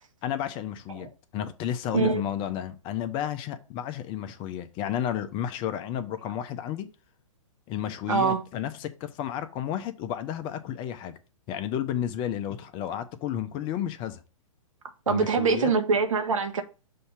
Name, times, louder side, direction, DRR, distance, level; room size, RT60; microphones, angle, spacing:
voice 1, 0.2-6.9 7.7-11.1 11.5-14.2 15.1-15.7, left 10 dB, 30° left, 0.7 m, -32 dB
voice 2, 8.1-8.4 15.1-16.6, right 5 dB, 75° right, 1.0 m, -24 dB
6.5 x 2.8 x 5.7 m
hypercardioid pair, 125°, 17 cm